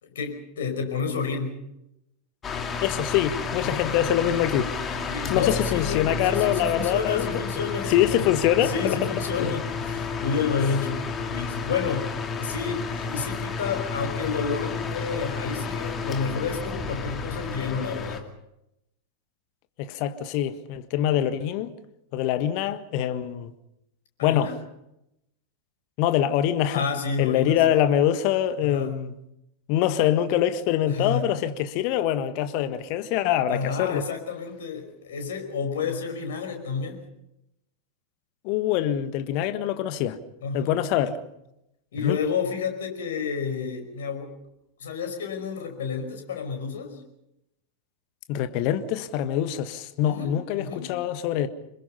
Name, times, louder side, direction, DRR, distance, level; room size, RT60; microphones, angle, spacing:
voice 1, 0.0-1.6 3.6-3.9 5.1-8.3 8.6-12.1 12.4-18.2 24.2-24.6 26.7-27.6 28.6-28.9 30.9-31.3 33.5-37.0 40.4-41.1 41.9-44.3 44.8-47.0 50.0-50.9, left 5 dB, 60° left, 5.2 m, -30 dB
sound 1, 2.4-18.2, left 5 dB, 25° left, 2.6 m, -31 dB
voice 2, 2.8-4.7 5.3-7.3 7.9-9.6 19.8-21.7 22.1-23.5 24.2-24.5 26.0-26.8 27.2-29.1 29.7-34.0 38.4-40.2 40.5-41.2 42.0-42.2 48.3-51.5, left 11 dB, 45° left, 1.6 m, -24 dB
26.5 x 22.0 x 5.6 m
figure-of-eight pair, 90°, 0 cm